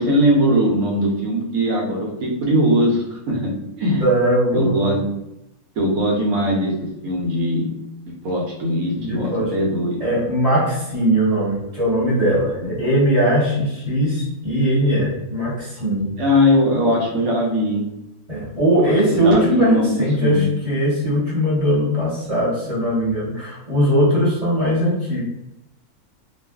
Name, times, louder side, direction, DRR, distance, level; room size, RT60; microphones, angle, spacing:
voice 1, 0.0-4.0 4.5-5.0 5.8-7.7 8.0-10.0 16.2-17.9 18.8-20.5, equal, 75° right, -2 dB, 1.1 m, -20 dB
voice 2, 4.0-4.7 8.9-9.5 10.0-16.1 18.3-25.2, equal, 25° right, -11 dB, 1.1 m, -20 dB
2.5 x 2.4 x 2.3 m, 0.88 s
omnidirectional pair, 1.6 m